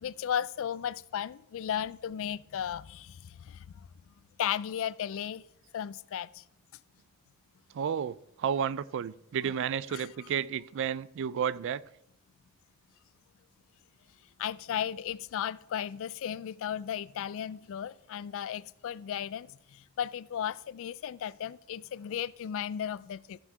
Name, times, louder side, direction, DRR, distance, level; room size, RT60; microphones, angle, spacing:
voice 1, 0.0-3.6 4.4-5.4 5.7-6.4 9.4-9.5 9.9-10.1 14.4-19.5 20.0-23.4, left 9 dB, 60° left, 0.3 m, -35 dB
voice 2, 7.7-11.8, right 8 dB, 55° right, 0.3 m, -32 dB
13.5 x 5.7 x 4.8 m
head